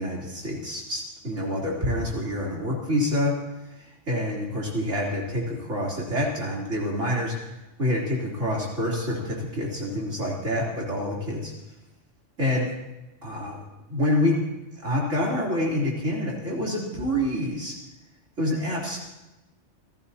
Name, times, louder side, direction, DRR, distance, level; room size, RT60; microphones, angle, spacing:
voice 1, 0.0-3.3 4.1-7.3 7.8-11.5 12.4-12.7 13.2-13.6 13.9-14.5 14.8-17.7 18.4-19.0, left 1 dB, 75° right, -4 dB, 3.9 m, -27 dB
28.5 x 16.0 x 2.9 m, 0.96 s
omnidirectional pair, 1.3 m